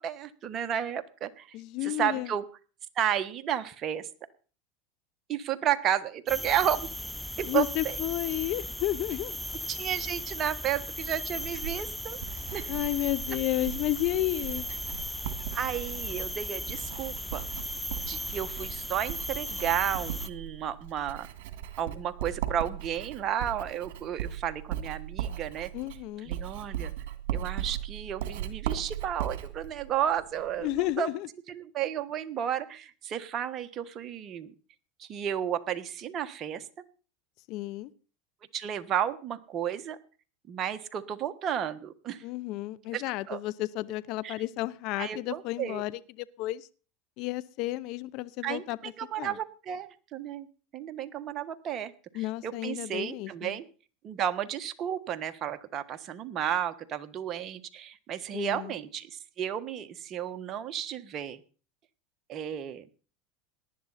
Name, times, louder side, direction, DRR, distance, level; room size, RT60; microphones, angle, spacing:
voice 1, 0.0-1.5 1.8-2.4 2.9-4.1 5.3-6.9 7.4-7.9 9.7-12.2 12.5-12.7 15.5-17.5 18.1-21.3 21.8-25.7 26.3-26.9 27.3-31.1 31.5-34.5 35.0-36.7 38.5-40.0 40.5-42.2 42.9-43.0 43.3-43.4 44.2-44.3 45.0-45.8 48.4-50.5 50.7-53.6 54.0-61.4 62.3-62.9, right 10 dB, 40° right, 1.4 m, -32 dB
voice 2, 1.5-2.3 7.5-9.4 12.7-14.7 25.7-26.3 30.6-31.3 37.5-37.9 42.2-46.7 47.2-48.9 49.2-49.4 52.1-53.6 58.3-58.8, left 17 dB, 60° left, 0.7 m, -32 dB
sound 1, 6.3-20.3, left 1 dB, ahead, 0.6 m, -37 dB
Writing, 11.4-30.9, right 11 dB, 75° right, 2.3 m, -38 dB
18.5 x 11.0 x 4.2 m
supercardioid pair, 105°, 0 cm